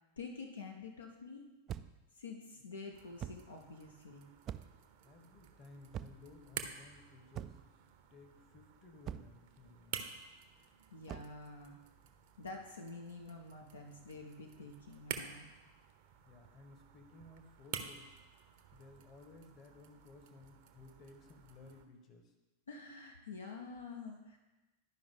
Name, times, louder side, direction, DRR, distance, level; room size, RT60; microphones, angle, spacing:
voice 1, 0.2-1.5 2.1-4.3 10.9-11.8 12.4-15.5 22.7-24.4, left 4 dB, 70° left, 2 dB, 0.8 m, -48 dB
sound 1, 1.7-2.1 3.2-3.5 4.5-4.9 5.9-6.3 7.3-7.8 9.1-9.4 11.1-11.4, right 9 dB, 30° right, 0.3 m, -44 dB
sound 2, 2.9-21.9, right 8 dB, 50° right, 0.7 m, -51 dB
voice 2, 5.0-7.6 8.1-10.2 15.6-15.8 16.3-18.2 18.7-22.3, left 3 dB, 30° left, 4 dB, 1.2 m, -58 dB
11.5 x 5.2 x 3.6 m, 1.1 s
figure-of-eight pair, 90°, 0 cm